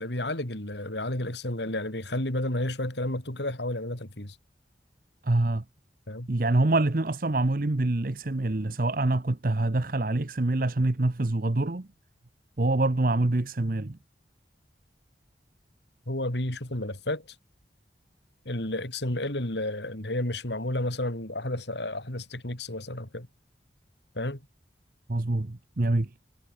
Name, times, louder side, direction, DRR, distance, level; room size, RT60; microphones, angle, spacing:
voice 1, 0.0-4.4 6.1-6.3 16.1-17.4 18.5-23.3 24.2-24.4, left 1 dB, 70° left, 3.9 m, -31 dB
voice 2, 5.2-5.6 6.3-11.9 12.6-14.0 25.1-26.1, right 2 dB, 50° right, 0.9 m, -25 dB
head